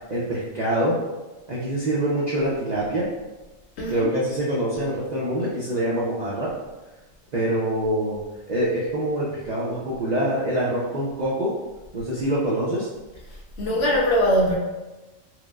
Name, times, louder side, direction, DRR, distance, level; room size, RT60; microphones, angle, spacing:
voice 1, 0.1-1.0 1.5-3.1 3.9-6.5 7.3-8.2 8.5-11.5 11.9-12.9, right 1 dB, 60° right, -7 dB, 0.4 m, -25 dB
voice 2, 3.8-4.1 13.6-14.6, equal, 65° left, -3 dB, 0.8 m, -21 dB
4.5 x 2.0 x 2.3 m, 1.1 s
omnidirectional pair, 1.4 m